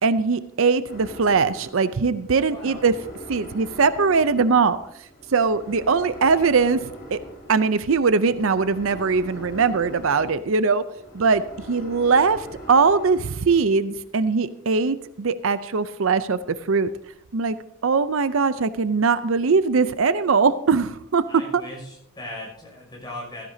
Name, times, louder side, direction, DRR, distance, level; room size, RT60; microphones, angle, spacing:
voice 1, 0.0-2.9 3.3-4.8 5.3-6.8 7.1-7.2 7.5-10.8 11.1-16.4 16.7-16.9 17.3-17.6 17.8-21.2, right 4 dB, 70° right, 13 dB, 0.6 m, -21 dB
sound 1, 0.9-13.4, equal, 45° left, 5.1 m, -42 dB
voice 2, 2.3-2.9 21.3-23.5, left 1 dB, 20° left, -2 dB, 6.0 m, -38 dB
15.5 x 15.0 x 2.8 m, 0.72 s
head